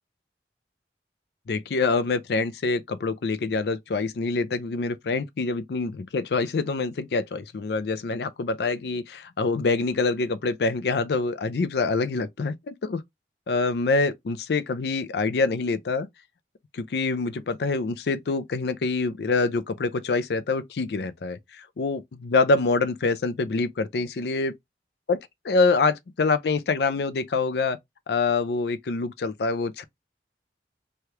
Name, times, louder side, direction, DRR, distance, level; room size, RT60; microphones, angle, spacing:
voice 1, 1.5-13.0 13.5-16.1 16.7-24.5 25.1-25.2 25.4-27.8 28.1-29.8, left 3 dB, 70° left, 0.4 m, -25 dB
3.2 x 2.3 x 2.8 m
head